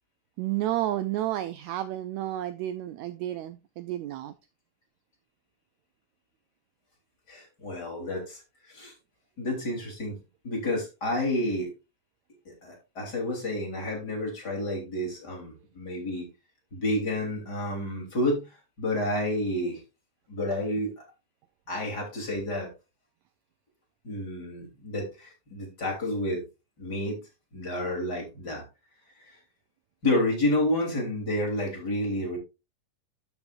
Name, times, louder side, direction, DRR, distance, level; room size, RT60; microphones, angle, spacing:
voice 1, 0.4-4.3, right 13 dB, 80° right, 12 dB, 1.7 m, -31 dB
voice 2, 7.3-8.4 8.7-8.9 9.4-10.2 10.4-11.7 12.5-16.3 16.7-18.5 18.8-19.8 20.3-20.9 21.7-22.7 24.0-26.4 26.8-27.2 27.5-28.6 29.3-29.4 30.0-32.4, left 1 dB, 30° left, 0 dB, 3.6 m, -30 dB
12.5 x 6.9 x 2.5 m, 0.26 s
omnidirectional pair, 3.7 m